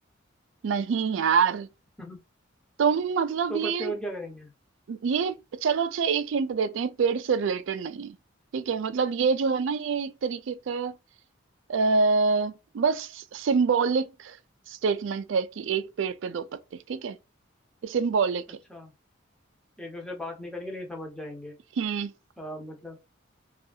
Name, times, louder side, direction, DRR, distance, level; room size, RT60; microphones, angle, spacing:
voice 1, 0.6-1.7 2.8-3.9 4.9-8.2 8.5-11.0 11.7-14.4 14.7-16.5 16.7-17.2 17.8-18.6 21.8-22.1, right 5 dB, 70° right, 0.3 m, -26 dB
voice 2, 3.5-4.5 18.7-18.9 19.8-21.6 22.4-23.0, equal, 5° left, 0.7 m, -36 dB
2.7 x 2.4 x 2.4 m
head